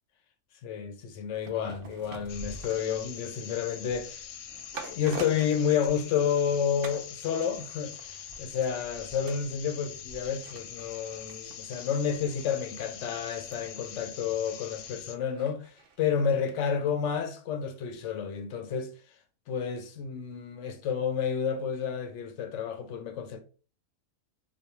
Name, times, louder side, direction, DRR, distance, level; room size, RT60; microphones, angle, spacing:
voice 1, 0.6-4.2 4.9-7.9 8.4-15.7 16.0-18.9 19.5-23.4, left 7 dB, 70° left, 0.7 m, -30 dB
sound 1, 1.3-6.5 6.8-7.1 7.4-16.5 16.9-17.0, right 4 dB, 60° right, 0.6 m, -48 dB
sound 2, 2.3-15.2, left 8 dB, 85° left, 1.1 m, -44 dB
5.1 x 2.1 x 2.9 m
omnidirectional pair, 1.6 m